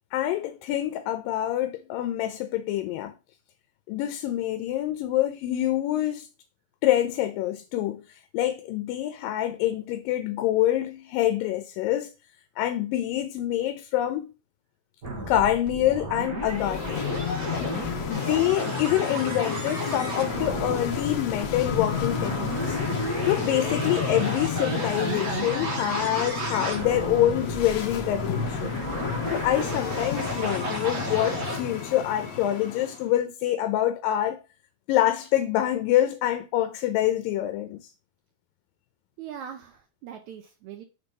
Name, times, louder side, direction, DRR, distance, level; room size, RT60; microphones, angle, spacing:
voice 1, 0.1-3.1 3.9-6.3 6.8-12.1 12.6-14.3 15.3-17.0 18.1-22.8 23.3-28.7 29.3-34.4 34.9-37.9, left 13 dB, 85° left, 2.3 m, -26 dB
sound 1, 15.0-31.6, right 2 dB, 35° right, 1.6 m, -33 dB
sound 2, 16.4-33.1, left 7 dB, 65° left, 1.9 m, -32 dB
voice 2, 39.2-40.8, right 9 dB, 80° right, 1.7 m, -41 dB
5.9 x 4.0 x 5.3 m
omnidirectional pair, 3.9 m